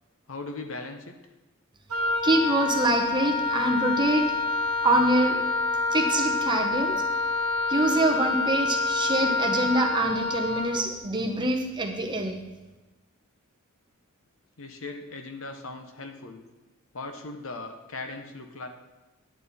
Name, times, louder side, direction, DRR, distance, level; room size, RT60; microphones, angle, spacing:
voice 1, 0.3-1.2 14.6-16.4 16.9-18.7, left 3 dB, 65° left, 6 dB, 1.0 m, -38 dB
Wind instrument woodwind instrument, 1.9-10.8, left 3 dB, 85° right, 1.1 m, -27 dB
voice 2, 2.2-4.3 4.8-5.4 5.9-7.0 7.7-12.4, right 1 dB, 20° right, 2 dB, 1.0 m, -25 dB
10.5 x 9.2 x 4.2 m, 1.1 s
head